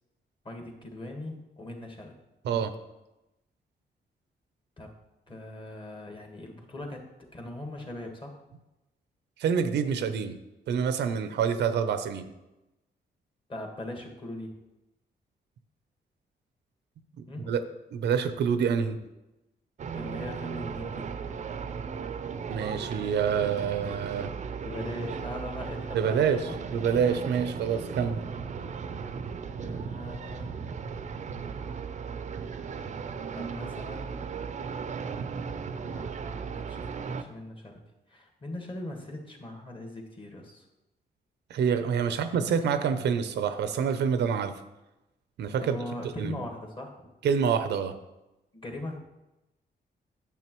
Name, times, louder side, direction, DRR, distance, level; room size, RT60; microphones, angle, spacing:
voice 1, 0.4-2.1 4.8-4.9 5.3-7.0 7.3-8.3 13.5-14.5 17.3-17.5 19.9-21.1 24.6-26.5 29.6-30.7 33.3-34.3 35.9-37.8 38.1-40.7 42.0-42.1 45.6-46.9 48.5-49.0, left 1 dB, 30° left, 2 dB, 1.5 m, -40 dB
voice 2, 9.4-10.4 10.7-12.3 17.2-17.6 17.9-19.0 22.5-24.3 25.9-26.4 26.7-28.2 41.5-44.5 45.4-45.8 46.2-46.4 47.2-47.9, right 7 dB, 90° right, 10 dB, 0.6 m, -27 dB
sound 1, 19.8-37.2, right 6 dB, 45° right, 0.5 m, -36 dB
9.0 x 7.2 x 3.0 m, 0.97 s
cardioid pair, 120°, 17 cm